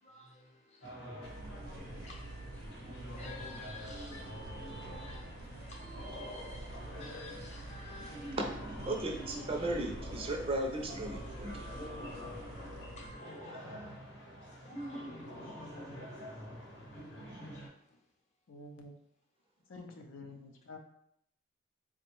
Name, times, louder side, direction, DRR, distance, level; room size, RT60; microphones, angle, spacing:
voice 1, 0.0-8.4 8.9-9.1 9.4-9.7 11.3-14.0 14.5-16.0 17.9-18.0, left 1 dB, 35° left, 0.6 m, -52 dB
sound 1, 0.8-17.7, equal, 65° left, 0.8 m, -46 dB
sound 2, 1.2-13.1, right 2 dB, 90° right, 0.4 m, -48 dB
voice 2, 8.8-11.7, right 1 dB, 30° right, 0.4 m, -35 dB
voice 3, 18.5-19.0 19.7-20.8, left 2 dB, 85° left, 0.5 m, -49 dB
3.5 x 2.1 x 2.9 m
head